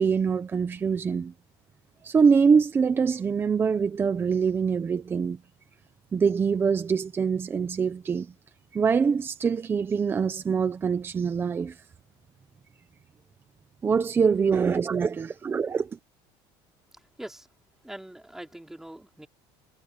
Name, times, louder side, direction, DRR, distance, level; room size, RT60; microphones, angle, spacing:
voice 1, 0.0-1.3 2.0-5.4 6.1-8.3 8.7-11.8 13.8-16.0, right 6 dB, 20° right, 0.9 m, -24 dB
voice 2, 16.9-17.5 17.8-19.3, right 1 dB, 5° right, 5.2 m, -43 dB
cardioid pair, 155°, 11 cm